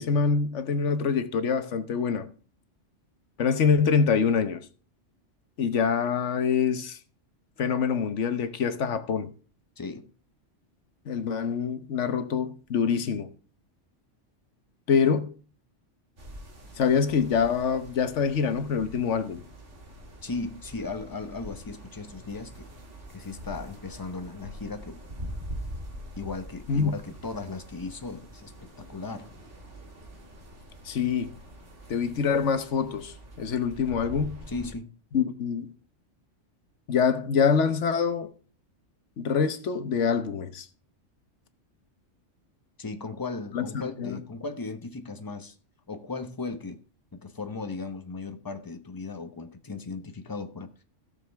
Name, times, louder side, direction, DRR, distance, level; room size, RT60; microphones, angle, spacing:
voice 1, 0.0-2.3 3.4-4.7 5.6-7.0 7.6-9.3 11.1-13.3 14.9-15.3 16.8-19.4 26.7-26.9 30.8-31.3 31.9-34.4 35.1-35.7 36.9-38.3 39.2-40.7 43.5-44.2, left 6 dB, 75° left, 1.3 m, -25 dB
voice 2, 9.8-10.1 20.2-22.7 23.1-25.0 26.2-29.3 34.5-34.9 42.8-45.6 45.9-46.8 47.1-50.7, left 3 dB, 20° left, 0.8 m, -37 dB
sound 1, 16.2-34.7, equal, 70° right, 2.4 m, -44 dB
16.0 x 6.8 x 3.4 m
omnidirectional pair, 1.3 m